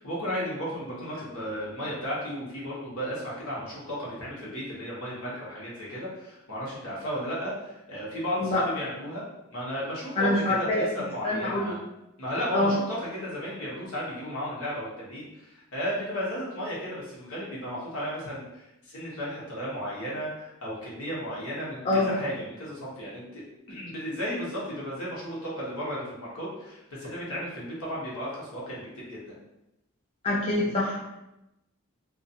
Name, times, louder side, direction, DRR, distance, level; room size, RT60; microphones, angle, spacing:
voice 1, 0.0-9.2 9.5-11.8 12.2-23.4 23.7-29.4, equal, 80° left, -6 dB, 1.0 m, -34 dB
voice 2, 10.2-10.9 11.2-11.8 12.5-12.8 21.9-22.1 30.2-31.0, left 2 dB, 25° left, -5 dB, 0.3 m, -25 dB
2.4 x 2.4 x 2.7 m, 0.91 s
head